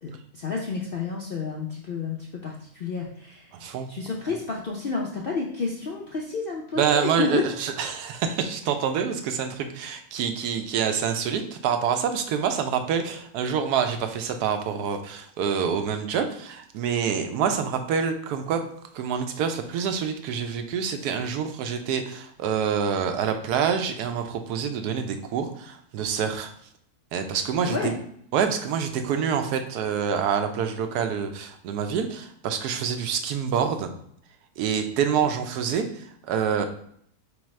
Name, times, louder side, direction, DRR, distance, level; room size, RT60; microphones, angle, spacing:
voice 1, 0.0-3.5 3.9-7.5 27.7-27.9, left 4 dB, 65° left, -2 dB, 0.5 m, -30 dB
voice 2, 3.5-3.9 6.8-18.6 18.9-26.5 27.1-27.9 28.3-33.9 34.6-36.7, right 7 dB, 85° right, 7 dB, 1.1 m, -26 dB
4.8 x 3.3 x 3.1 m, 0.65 s
omnidirectional pair, 1.6 m